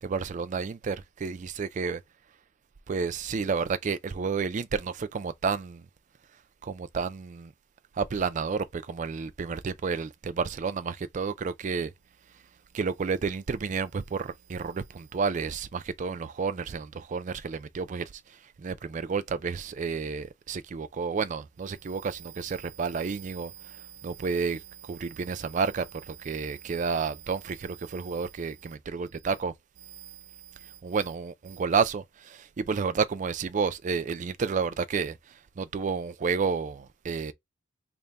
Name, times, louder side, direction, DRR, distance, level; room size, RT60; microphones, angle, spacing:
voice 1, 0.0-2.0 2.9-5.9 6.6-7.5 7.9-11.9 12.3-12.4 12.7-37.3, right 5 dB, 35° right, 0.3 m, -31 dB
3.4 x 2.1 x 3.9 m
head